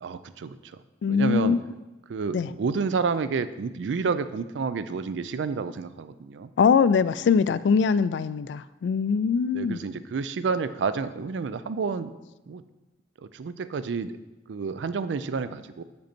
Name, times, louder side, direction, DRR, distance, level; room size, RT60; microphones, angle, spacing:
voice 1, 0.0-0.8 1.1-1.6 2.1-6.5 9.5-12.1 12.5-12.6 13.3-14.2 14.5-15.8, right 5 dB, 80° right, 13 dB, 0.4 m, -29 dB
voice 2, 1.0-1.6 2.3-2.5 6.6-9.8, left 6 dB, 75° left, 16 dB, 0.3 m, -22 dB
8.0 x 5.2 x 4.3 m, 1.0 s
head